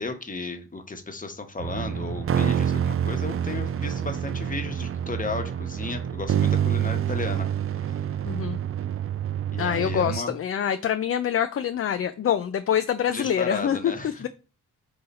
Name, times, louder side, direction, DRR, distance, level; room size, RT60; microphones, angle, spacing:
voice 1, 0.0-7.5 7.8-8.0 9.5-10.3 13.1-14.3, left 3 dB, 25° left, 1.1 m, -34 dB
sound 1, 1.6-10.2, right 9 dB, 40° right, 0.5 m, -27 dB
voice 2, 8.2-8.6 9.6-14.3, left 9 dB, 40° left, 0.5 m, -25 dB
3.8 x 2.7 x 4.2 m
supercardioid pair, 50°, 33 cm